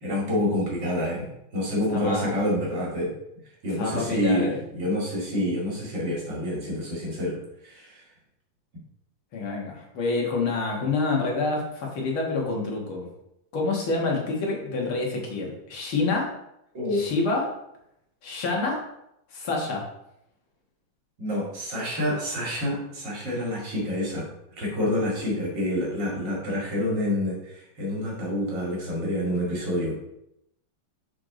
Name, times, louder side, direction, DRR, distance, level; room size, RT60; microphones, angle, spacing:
voice 1, 0.0-3.1 3.6-7.4 7.6-8.0 16.7-17.1 21.2-24.3 24.6-30.0, left 1 dB, 60° right, -3 dB, 2.9 m, -27 dB
voice 2, 1.9-2.3 3.8-4.6 9.3-13.1 13.5-16.3 16.9-17.5 18.2-18.8 19.3-19.8, left 3 dB, 85° left, -1 dB, 2.5 m, -27 dB
6.6 x 5.8 x 3.8 m, 0.80 s
omnidirectional pair, 2.2 m